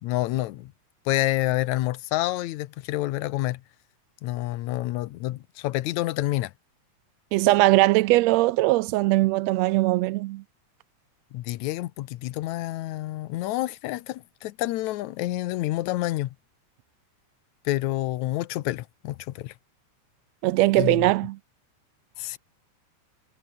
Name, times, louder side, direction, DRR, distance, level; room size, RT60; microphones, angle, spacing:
voice 1, 0.0-0.7 1.1-3.6 4.2-6.5 11.3-16.4 17.7-19.5 20.8-21.1 22.2-22.4, left 16 dB, 75° left, 2.1 m, -28 dB
voice 2, 7.3-10.4 20.4-21.4, right 19 dB, 80° right, 1.6 m, -20 dB
omnidirectional pair, 3.4 m